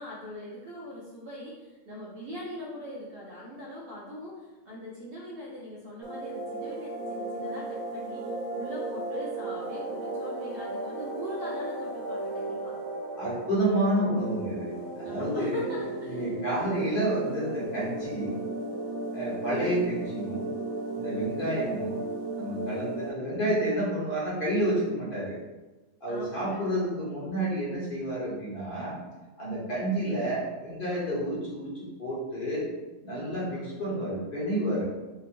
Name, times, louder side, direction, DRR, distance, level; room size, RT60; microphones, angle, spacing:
voice 1, 0.0-12.8 15.0-16.5 26.1-26.6 33.1-33.8, equal, 60° right, -6 dB, 0.7 m, -42 dB
sound 1, 6.0-23.1, right 2 dB, 90° right, 1.0 m, -35 dB
voice 2, 13.2-15.7 16.1-18.3 19.1-20.5 20.9-22.0 22.4-25.4 26.0-29.0 29.4-32.7 33.0-34.8, right 1 dB, 45° left, -8 dB, 1.1 m, -30 dB
2.8 x 2.8 x 2.5 m, 1.2 s
omnidirectional pair, 1.4 m